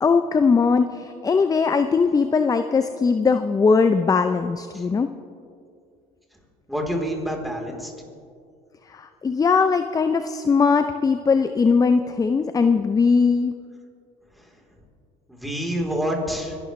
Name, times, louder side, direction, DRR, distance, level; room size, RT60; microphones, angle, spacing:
voice 1, 0.0-5.1 8.9-13.5, left 5 dB, 20° left, 9 dB, 0.5 m, -20 dB
voice 2, 6.7-7.9 14.3-14.6 15.3-16.6, equal, ahead, 0 dB, 3.5 m, -28 dB
25.5 x 12.0 x 3.2 m, 2.3 s
supercardioid pair, 90°, 17 cm